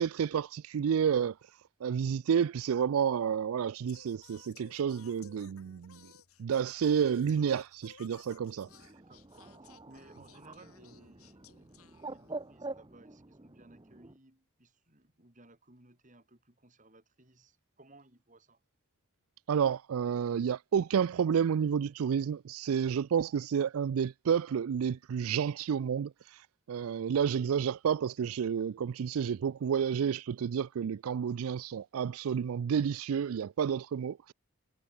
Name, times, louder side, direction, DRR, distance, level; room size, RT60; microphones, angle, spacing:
voice 1, 0.0-1.3 1.8-6.0 6.4-8.7 19.5-34.3, right 7 dB, 75° right, 0.4 m, -30 dB
Singing, 3.9-12.6, left 7 dB, 80° left, 1.8 m, -59 dB
Bird, 8.6-14.2, right 2 dB, 20° right, 0.8 m, -46 dB
voice 2, 9.1-18.6, right 2 dB, 35° right, 3.5 m, -60 dB
head